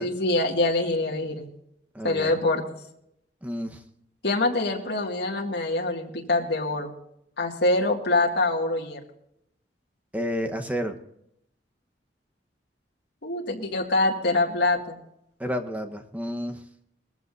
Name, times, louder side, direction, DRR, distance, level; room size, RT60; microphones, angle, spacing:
voice 1, 0.0-1.5 2.0-2.8 4.2-6.9 7.4-9.0 13.2-15.0, left 2 dB, 70° left, 0 dB, 2.1 m, -25 dB
voice 2, 1.9-2.3 3.4-3.8 10.1-11.0 15.4-16.6, equal, 10° right, 5 dB, 1.1 m, -30 dB
21.0 x 14.5 x 2.7 m, 0.77 s
head